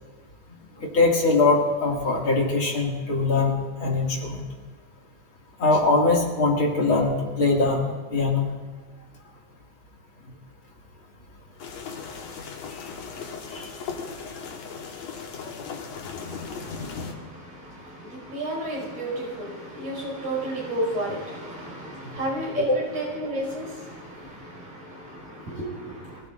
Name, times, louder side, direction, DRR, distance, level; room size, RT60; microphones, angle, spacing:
voice 1, 0.8-3.5 3.8-4.4 5.6-8.5 13.5-13.7 22.6-22.8, left 3 dB, 45° left, 2.8 m, -22 dB
sound 1, 11.6-17.1, left 5 dB, 65° left, 2.5 m, -37 dB
voice 2, 16.2-26.2, right 1 dB, 80° right, 6.9 m, -33 dB
25.5 x 15.5 x 2.5 m
omnidirectional pair, 3.4 m